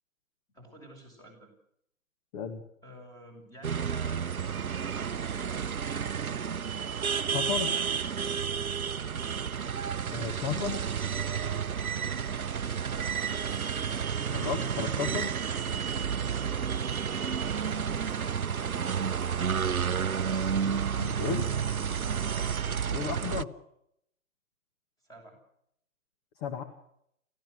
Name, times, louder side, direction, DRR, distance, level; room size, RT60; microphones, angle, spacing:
voice 1, 0.5-1.5 2.8-6.7 12.0-12.5 16.8-20.0 22.2-22.6 25.0-25.4, right 1 dB, 10° left, 4 dB, 6.8 m, -51 dB
voice 2, 2.3-2.6 7.3-7.8 10.1-10.8 14.3-15.3 20.7-21.5 22.9-23.5 26.4-26.6, left 7 dB, 30° left, 7 dB, 1.9 m, -34 dB
sound 1, 3.6-23.4, right 7 dB, 85° right, 0.8 m, -31 dB
28.0 x 15.0 x 6.6 m, 0.72 s
figure-of-eight pair, 130°, 42 cm